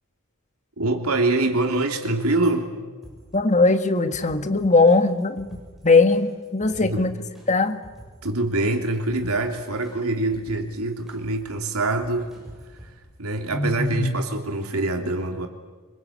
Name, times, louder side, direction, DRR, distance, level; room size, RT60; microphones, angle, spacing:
voice 1, 0.8-2.7 6.8-7.1 8.2-12.3 13.2-15.5, right 2 dB, 90° right, 4 dB, 3.2 m, -24 dB
sound 1, 3.0-12.9, equal, ahead, 7.6 m, -48 dB
voice 2, 3.3-5.5 5.8-7.1 7.5-7.8 13.5-14.2, left 3 dB, 35° left, 9 dB, 1.5 m, -19 dB
25.5 x 22.5 x 8.7 m, 1.3 s
head